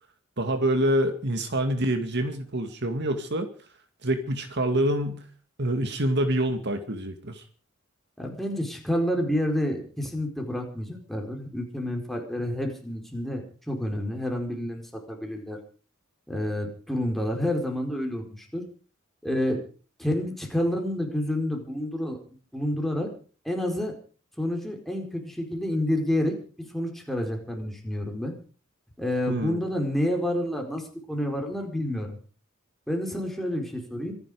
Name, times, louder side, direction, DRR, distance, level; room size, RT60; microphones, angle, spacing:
voice 1, 0.4-3.5 4.0-5.3 5.6-7.4 29.3-29.6, right 1 dB, 55° right, 7 dB, 2.2 m, -26 dB
voice 2, 8.2-15.6 16.3-18.6 19.2-19.6 20.0-22.2 22.5-23.1 23.4-23.9 24.4-28.3 29.0-32.2 32.9-34.1, left 1 dB, ahead, 2 dB, 4.7 m, -29 dB
26.0 x 11.0 x 5.1 m, 0.39 s
head